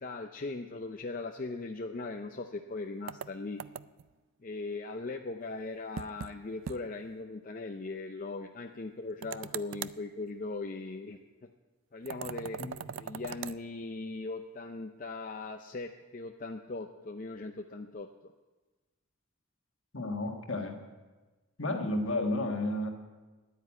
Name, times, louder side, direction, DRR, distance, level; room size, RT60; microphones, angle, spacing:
voice 1, 0.0-3.6 4.4-11.5 11.9-12.6 13.0-18.3, left 3 dB, 35° left, 4 dB, 0.5 m, -39 dB
sound 1, 3.1-4.1 6.0-6.3 6.7-6.8 7.1-7.2 9.2-10.0 12.1-13.6, right 8 dB, 60° right, 0.3 m, -40 dB
voice 2, 19.9-20.8 21.6-22.9, left 1 dB, 60° left, 3 dB, 1.5 m, -32 dB
10.0 x 9.3 x 8.4 m, 1.2 s
head